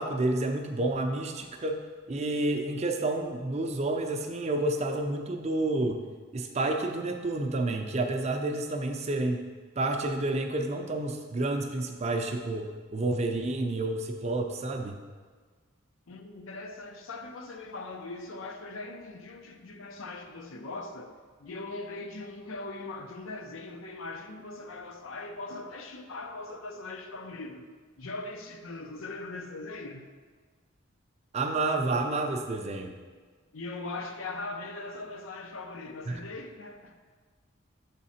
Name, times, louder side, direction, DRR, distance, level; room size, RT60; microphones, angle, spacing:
voice 1, 0.0-1.8 2.1-6.0 6.3-9.5 9.8-15.0 31.3-32.9 36.1-36.3, right 2 dB, 30° right, 4 dB, 0.5 m, -30 dB
voice 2, 16.1-21.1 21.4-27.7 28.0-30.1 33.5-37.0, left 2 dB, 80° left, 5 dB, 0.6 m, -40 dB
7.2 x 3.7 x 4.2 m, 1.5 s
head